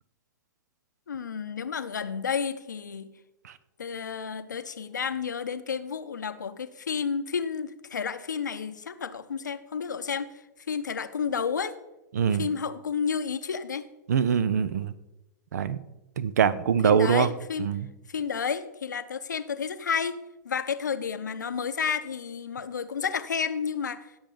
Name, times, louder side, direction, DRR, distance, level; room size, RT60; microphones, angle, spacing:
voice 1, 1.1-3.1 3.8-10.3 10.7-11.7 12.4-13.8 16.8-17.7 18.1-20.2 20.4-24.0, left 6 dB, 70° left, 12 dB, 0.7 m, -31 dB
voice 2, 12.1-12.5 14.1-14.9 15.5-15.8 16.2-17.3 17.6-17.9, right 7 dB, 60° right, 17 dB, 0.6 m, -23 dB
16.5 x 7.1 x 3.9 m, 1.0 s
figure-of-eight pair, 100°, 10 cm